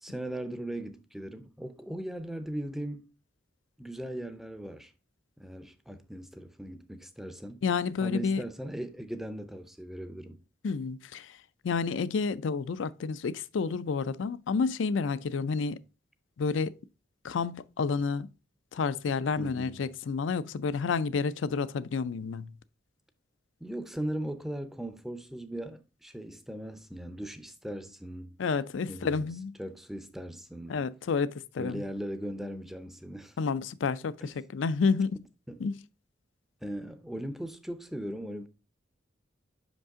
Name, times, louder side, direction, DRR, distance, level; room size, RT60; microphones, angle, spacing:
voice 1, 0.0-3.1 3.8-4.9 5.4-7.6 8.0-10.4 19.4-19.8 23.6-28.4 28.9-29.3 29.6-30.9 31.6-33.4 34.2-34.3 35.5-35.6 36.6-38.5, right 1 dB, ahead, 0.5 m, -38 dB
voice 2, 7.6-8.4 10.6-11.3 11.6-15.8 16.4-16.7 17.2-18.3 18.7-22.5 28.4-29.5 30.7-31.8 33.4-35.2 35.6-35.7, left 5 dB, 80° left, 0.4 m, -30 dB
5.7 x 5.3 x 3.6 m
head